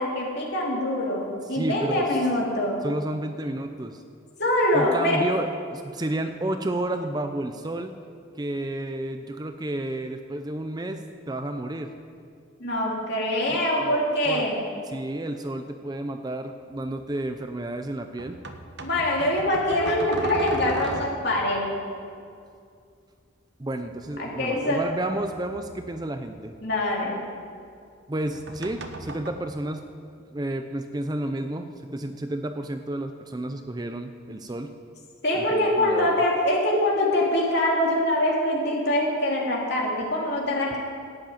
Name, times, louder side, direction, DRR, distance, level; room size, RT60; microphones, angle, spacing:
voice 1, 0.0-2.8 4.4-5.2 12.6-14.5 18.8-21.7 24.2-24.8 26.6-27.2 35.2-40.8, left 1 dB, 55° left, -3 dB, 2.9 m, -24 dB
voice 2, 1.4-2.1 2.8-4.0 4.7-7.9 8.3-11.9 13.5-14.5 14.9-18.4 23.6-26.5 28.1-29.8 30.3-34.7 35.4-36.1, right 1 dB, 20° right, 7 dB, 0.5 m, -31 dB
sound 1, 16.8-16.9 18.2-21.5 23.9-26.6 28.1-29.3, right 2 dB, 55° right, 1.0 m, -38 dB
11.5 x 8.3 x 9.0 m, 2.3 s
head